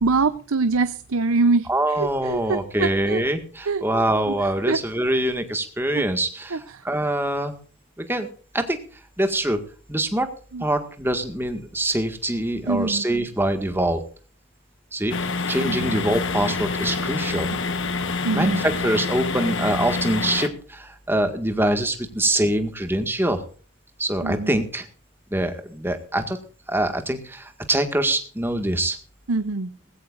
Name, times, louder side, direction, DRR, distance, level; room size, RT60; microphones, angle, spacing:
voice 1, 0.0-3.2 3.7-3.8 4.7-4.8 5.9-6.0 6.5-6.6 10.5-10.6 12.7-13.0 15.7-16.0 18.2-18.6 24.2-24.5 29.3-29.7, right 3 dB, 80° right, 12 dB, 0.7 m, -24 dB
voice 2, 1.7-7.6 8.0-8.3 8.5-8.8 9.2-9.6 9.9-10.3 10.6-14.0 14.9-17.5 18.3-23.4 24.0-24.9 25.3-26.4 26.7-29.0, right 1 dB, 10° right, 6 dB, 1.8 m, -24 dB
sound 1, 15.1-20.5, left 4 dB, 60° left, 1.2 m, -27 dB
19.5 x 16.0 x 2.5 m, 0.41 s
head